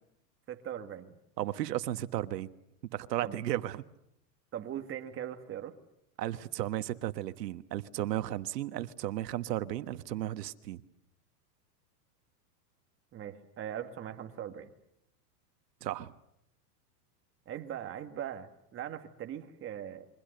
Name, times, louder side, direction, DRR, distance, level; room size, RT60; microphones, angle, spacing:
voice 1, 0.5-1.1 3.2-3.4 4.5-5.7 13.1-14.7 17.5-20.1, right 10 dB, 25° right, 6 dB, 2.0 m, -40 dB
voice 2, 1.4-2.5 2.9-3.8 6.2-10.8 15.8-16.1, right 13 dB, 85° right, 11 dB, 1.4 m, -34 dB
29.0 x 23.5 x 6.7 m, 0.78 s
supercardioid pair, 145°, 48 cm